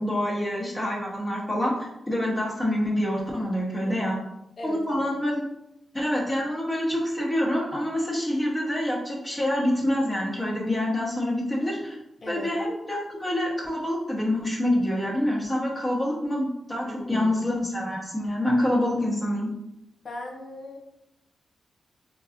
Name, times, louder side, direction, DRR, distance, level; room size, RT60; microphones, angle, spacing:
voice 1, 0.0-4.2 4.6-5.4 5.9-12.0 12.3-19.5, left 1 dB, 15° left, -4 dB, 1.2 m, -26 dB
voice 2, 3.9-4.2 4.6-5.1 12.2-12.5 16.9-17.4 20.0-20.8, left 1 dB, 50° left, 1 dB, 0.6 m, -38 dB
3.8 x 2.6 x 2.6 m, 0.85 s
cardioid pair, 95°, 0 cm